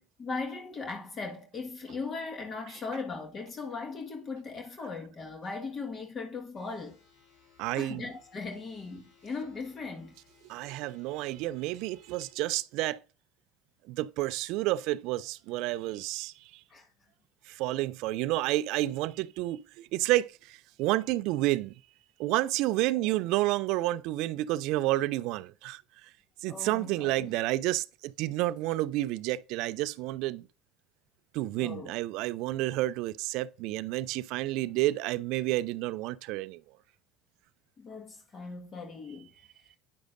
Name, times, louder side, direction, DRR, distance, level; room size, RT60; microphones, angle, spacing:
voice 1, 0.0-7.0 7.8-10.1 16.7-16.9 23.0-23.1 26.5-27.4 31.6-31.9 37.8-39.3, left 4 dB, 40° left, 1.6 m, -38 dB
sound 1, 6.6-12.3, left 6 dB, 70° left, 4.1 m, -63 dB
voice 2, 7.6-8.1 10.5-13.0 13.9-16.6 17.5-21.8 22.2-26.1 26.4-30.5 31.3-36.6, right 17 dB, 65° right, 0.4 m, -30 dB
9.3 x 6.3 x 2.6 m
hypercardioid pair, 70°, 0 cm